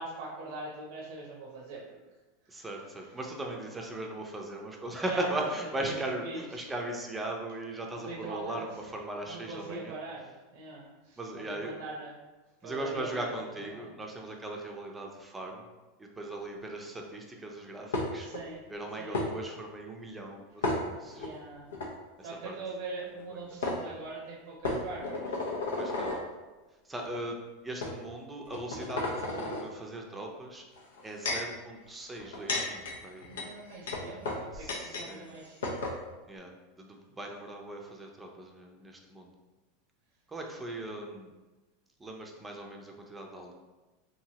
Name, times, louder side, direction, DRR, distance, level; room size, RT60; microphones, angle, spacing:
voice 1, 0.0-2.0 2.6-2.7 5.0-5.3 5.9-6.0 6.2-6.7 8.0-8.6 9.3-12.2 12.6-13.8 18.2-18.6 19.0-19.2 21.2-21.7 22.2-25.4 33.3-35.9, right 3 dB, 70° right, -3 dB, 0.6 m, -42 dB
voice 2, 2.5-10.0 11.2-11.7 12.6-15.7 16.0-18.3 18.7-21.3 22.2-22.6 23.3-23.7 25.8-26.1 26.8-27.4 27.6-30.6 31.0-33.3 34.5-35.3 36.3-36.5 36.8-39.3 40.3-41.3 42.0-43.5, right 1 dB, 15° right, 1 dB, 0.5 m, -38 dB
sound 1, 17.9-18.4 19.1-19.3 20.6-21.3 21.7-21.9 23.2-23.3 23.6-23.8 24.6-26.2 27.0-27.2 27.8-27.9 28.5-29.6 30.8-31.5 32.2-35.1 35.3-35.4 35.6-36.0, left 2 dB, 80° left, 0.5 m, -33 dB
2.8 x 2.6 x 2.8 m, 1.2 s
hypercardioid pair, 95°, 0 cm